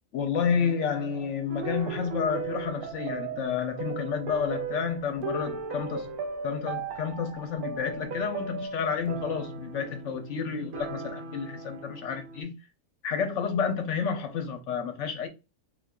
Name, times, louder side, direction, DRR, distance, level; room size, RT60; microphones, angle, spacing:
voice 1, 0.1-6.1 6.4-12.5 13.0-15.3, left 6 dB, 60° left, 0.9 m, -30 dB
sound 1, 1.5-12.4, right 5 dB, 80° right, 1.2 m, -37 dB
3.9 x 2.8 x 2.3 m
omnidirectional pair, 1.6 m